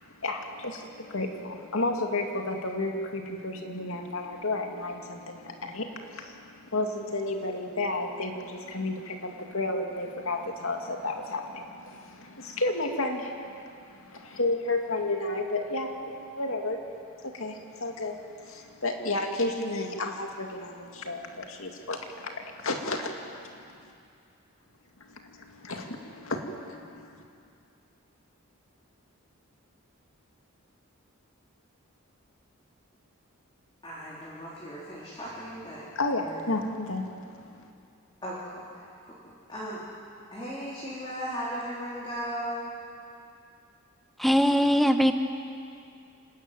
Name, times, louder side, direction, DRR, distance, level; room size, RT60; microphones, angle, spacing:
voice 1, 0.2-16.8 17.2-23.1 25.1-27.2 36.0-37.7, left 2 dB, 70° left, 3 dB, 2.4 m, -32 dB
voice 2, 33.8-35.8 36.2-36.5 38.2-39.1 39.5-39.8 40.3-42.7, equal, 20° left, -8 dB, 3.8 m, -37 dB
voice 3, 44.2-45.1, equal, ahead, 7 dB, 0.9 m, -21 dB
28.5 x 13.0 x 9.2 m, 2.5 s
head